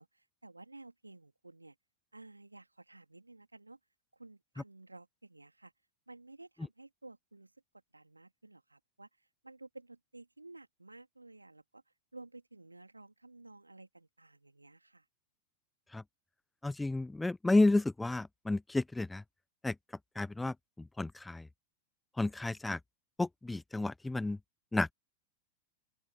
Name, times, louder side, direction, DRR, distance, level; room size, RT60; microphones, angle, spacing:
voice 1, 0.0-1.8 2.1-3.8 4.1-5.7 6.1-7.5 7.9-11.8 12.1-15.0, right 2 dB, 85° right, 3.1 m, -54 dB
voice 2, 16.6-19.2 19.6-19.7 20.2-21.5 22.2-22.8 23.2-24.4 24.7-24.9, left 2 dB, 5° left, 0.5 m, -31 dB
open air
figure-of-eight pair, 90°, 0 cm